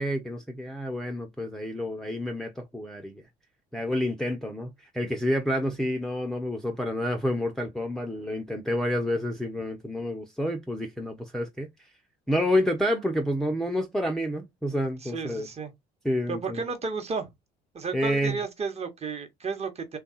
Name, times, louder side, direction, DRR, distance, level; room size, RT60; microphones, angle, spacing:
voice 1, 0.0-3.2 3.7-11.9 12.3-15.5 16.0-16.6 17.9-18.4, left 1 dB, ahead, 0.6 m, -29 dB
voice 2, 15.0-15.7 16.3-17.3 17.7-20.0, right 4 dB, 30° right, 1.1 m, -32 dB
3.5 x 2.3 x 4.0 m
figure-of-eight pair, 55°, 21 cm